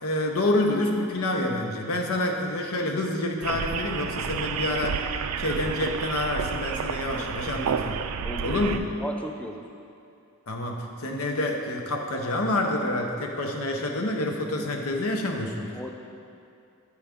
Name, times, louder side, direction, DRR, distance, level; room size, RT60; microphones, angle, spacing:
voice 1, 0.0-5.1 5.4-8.0 8.4-8.9 10.5-15.7, left 1 dB, 70° left, 2 dB, 0.8 m, -27 dB
sound 1, 3.4-8.8, right 7 dB, 80° right, 0.3 m, -30 dB
voice 2, 8.2-8.6 9.0-9.6 15.7-15.9, equal, 5° left, 2 dB, 0.4 m, -35 dB
10.0 x 4.7 x 3.5 m, 2.5 s
head